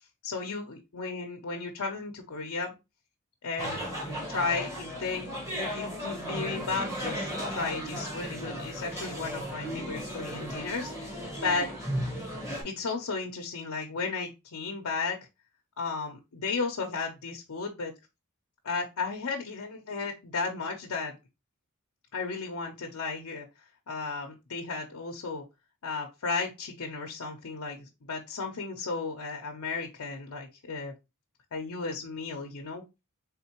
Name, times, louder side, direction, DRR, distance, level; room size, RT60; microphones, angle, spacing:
voice 1, 0.2-2.7 3.4-3.8 4.3-11.7 12.6-15.2 15.8-17.9 18.6-21.2 22.1-23.5 23.9-25.4 25.8-30.9 31.5-32.8, left 4 dB, 85° left, 1 dB, 0.7 m, -34 dB
sound 1, 3.6-12.6, equal, 15° right, 1.5 m, -35 dB
3.8 x 3.6 x 2.9 m, 0.24 s
head